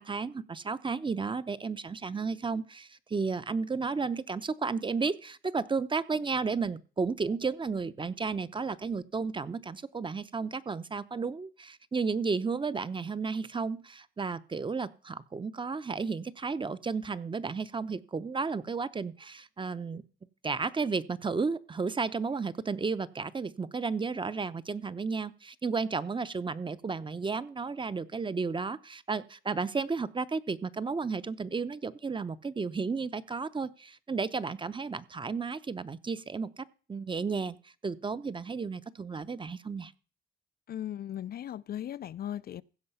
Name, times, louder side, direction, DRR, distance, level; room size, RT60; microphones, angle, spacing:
voice 1, 0.0-20.0 20.4-39.9, right 4 dB, 25° right, 0.7 m, -33 dB
voice 2, 40.7-42.6, left 11 dB, 50° left, 0.4 m, -37 dB
15.5 x 5.5 x 5.5 m
cardioid pair, 90°, 20 cm